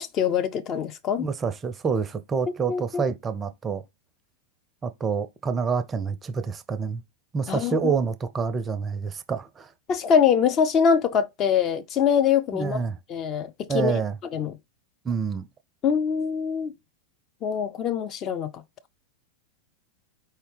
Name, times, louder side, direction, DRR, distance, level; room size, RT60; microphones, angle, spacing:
voice 1, 0.0-1.3 2.7-3.0 7.5-7.9 9.9-12.8 13.1-13.9 14.3-14.6 15.8-16.7 17.4-18.5, left 7 dB, 30° left, 0.5 m, -23 dB
voice 2, 1.2-3.8 4.8-7.0 7.3-9.7 12.5-13.0 13.7-14.2 15.0-15.5, right 5 dB, 20° right, 0.5 m, -27 dB
4.7 x 2.7 x 3.2 m
figure-of-eight pair, 90°, 0 cm